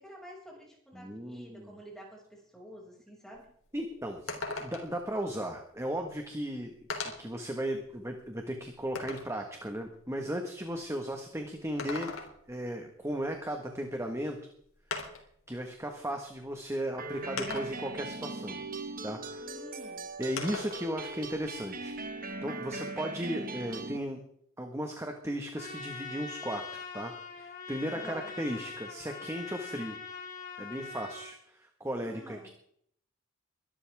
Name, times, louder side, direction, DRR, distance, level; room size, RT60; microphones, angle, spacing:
voice 1, 0.0-3.5 19.4-20.1 27.9-28.3 32.0-32.5, equal, ahead, -3 dB, 6.3 m, -49 dB
voice 2, 0.9-1.7 3.7-6.7 7.2-12.1 12.5-14.4 15.5-18.6 19.0-19.5 20.2-24.2 24.6-27.1 27.4-30.0 30.6-32.5, equal, 15° right, 4 dB, 1.5 m, -36 dB
sound 1, 3.4-3.5 3.8-3.9 4.3-5.0 6.1-6.2 6.9-7.4 8.0-9.4 11.6-12.6 14.1-14.2 14.9-15.4 16.4-16.5 17.4-18.0 20.4-20.8 21.2-22.3, left 3 dB, 75° left, 3.5 m, -39 dB
sound 2, 17.0-24.0, right 3 dB, 40° right, 1.5 m, -40 dB
Trumpet, 25.5-31.3, left 5 dB, 40° left, 3.0 m, -43 dB
23.0 x 12.5 x 3.6 m, 0.67 s
head